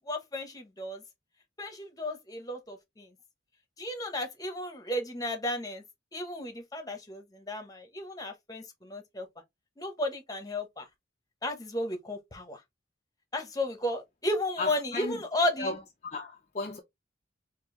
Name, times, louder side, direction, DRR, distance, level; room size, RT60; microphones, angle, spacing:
voice 1, 0.1-1.0 1.6-3.1 3.8-5.8 6.1-9.3 9.8-10.8 11.4-12.6 13.3-15.7, left 1 dB, 20° left, 1.0 m, -33 dB
voice 2, 14.6-15.2 15.6-16.8, left 2 dB, 35° left, 0.6 m, -35 dB
4.5 x 2.7 x 3.2 m
head